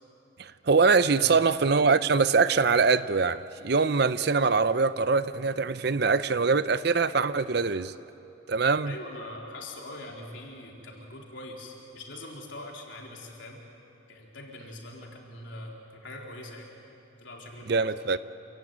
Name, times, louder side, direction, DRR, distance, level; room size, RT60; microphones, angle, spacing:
voice 1, 0.4-7.9 8.5-8.9 17.7-18.2, right 4 dB, 55° right, 0.6 m, -23 dB
voice 2, 1.1-1.5 8.8-13.6 14.1-16.7 17.2-17.8, left 1 dB, 70° left, 3.9 m, -43 dB
28.0 x 16.0 x 9.2 m
head